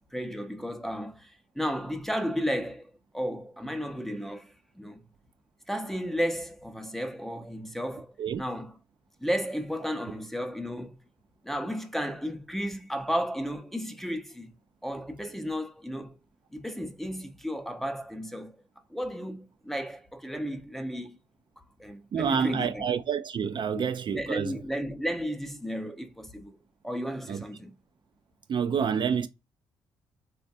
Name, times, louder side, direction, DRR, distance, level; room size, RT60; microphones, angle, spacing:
voice 1, 0.1-5.0 5.7-8.8 9.2-11.0 11.4-14.5 14.8-16.2 16.5-18.6 18.9-21.2 21.6-22.9 23.7-23.8 24.1-27.7, equal, 5° left, 0.6 m, -33 dB
voice 2, 22.1-24.5 27.3-27.4 28.5-29.3, right 7 dB, 50° right, 0.4 m, -28 dB
3.2 x 2.2 x 2.6 m
supercardioid pair, 60°, 10 cm